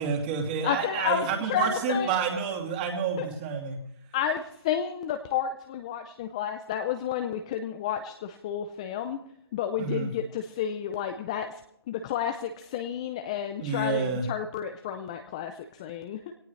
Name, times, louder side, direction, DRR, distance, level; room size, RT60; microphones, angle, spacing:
voice 1, 0.0-3.8 9.8-10.1 13.6-14.2, right 5 dB, 20° right, 3 dB, 2.6 m, -29 dB
voice 2, 0.6-2.1 3.2-3.3 4.1-9.2 9.5-11.6 11.9-16.3, left 9 dB, 15° left, 7 dB, 0.5 m, -31 dB
20.5 x 17.5 x 3.2 m, 0.71 s
hypercardioid pair, 165°, 13 cm